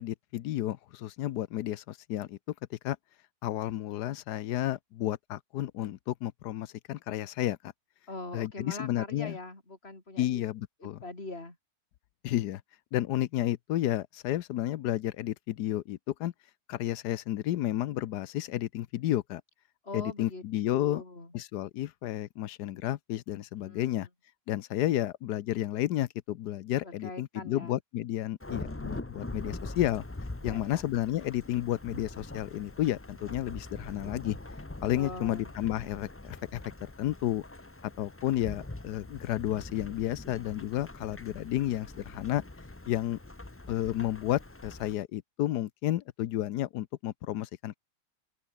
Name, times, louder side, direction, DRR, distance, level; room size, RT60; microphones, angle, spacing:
voice 1, 0.0-2.4 2.7-3.0 3.4-7.7 8.3-9.4 10.2-11.0 12.2-12.6 12.9-16.3 16.7-19.4 19.9-21.0 21.3-24.1 24.5-30.0 30.4-34.4 34.8-37.4 38.0-42.4 42.9-43.2 43.7-47.8, left 13 dB, 85° left, 1.3 m, -32 dB
voice 2, 8.1-10.4 10.8-11.6 19.8-21.3 23.6-23.9 26.8-27.8 30.4-30.8 34.9-35.5, left 2 dB, 40° left, 5.5 m, -42 dB
Thunderstorm / Rain, 28.4-44.9, left 2 dB, 15° left, 0.6 m, -43 dB
omnidirectional pair, 1.7 m